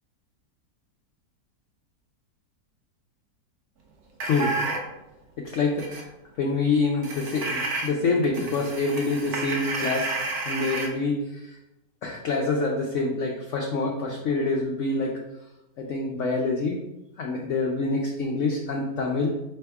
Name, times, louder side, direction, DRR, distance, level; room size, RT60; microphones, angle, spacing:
voice 1, 4.2-4.5 5.4-6.1 6.4-10.1 10.4-11.6 12.0-15.2 15.8-16.8 17.2-19.4, left 3 dB, 70° left, 0 dB, 0.7 m, -26 dB
sound 1, 4.2-4.9 5.8-6.0 7.0-7.9 8.2-10.9, right 3 dB, 65° right, 1.2 m, -30 dB
4.6 x 3.4 x 3.4 m, 0.92 s
omnidirectional pair, 1.9 m